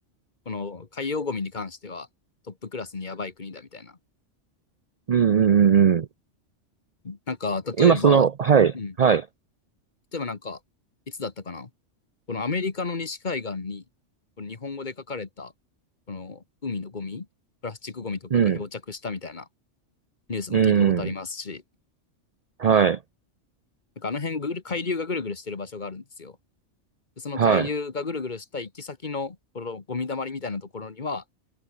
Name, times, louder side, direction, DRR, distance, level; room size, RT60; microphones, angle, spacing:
voice 1, 0.4-2.1 2.5-4.0 7.0-8.3 8.7-8.9 10.1-10.6 11.1-11.7 12.3-13.8 14.4-15.5 16.1-17.3 17.6-19.5 20.3-21.6 24.0-26.4 27.2-31.2, left 4 dB, 40° left, 1.5 m, -32 dB
voice 2, 5.1-6.1 7.8-9.2 18.3-18.6 20.5-21.1 22.6-23.0 27.4-27.7, right 7 dB, 50° right, 0.5 m, -19 dB
omnidirectional pair, 1.3 m